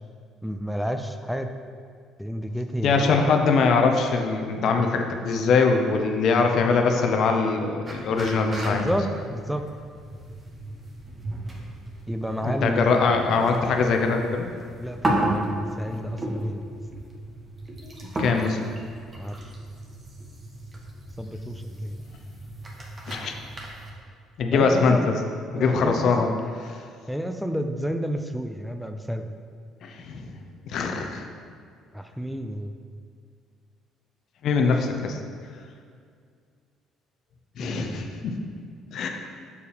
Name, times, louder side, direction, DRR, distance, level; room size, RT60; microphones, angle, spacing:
voice 1, 0.4-1.5 2.2-3.1 8.7-9.6 12.1-13.0 14.8-16.6 19.2-19.4 21.2-22.0 24.5-25.1 25.5-26.3 27.1-29.4 31.9-32.7 37.6-38.0, equal, ahead, 6 dB, 0.4 m, -30 dB
voice 2, 2.8-8.9 12.4-14.5 17.8-18.6 23.1-23.3 24.4-25.1 25.5-26.3 26.7-26.8 29.8-30.3 30.7-31.2 34.4-35.2 37.6-38.4 38.9-39.1, left 4 dB, 65° left, 4 dB, 0.6 m, -22 dB
sound 1, 7.9-23.9, right 1 dB, 30° right, 1.2 m, -34 dB
6.9 x 4.4 x 3.3 m, 2.2 s
hypercardioid pair, 60°, 0 cm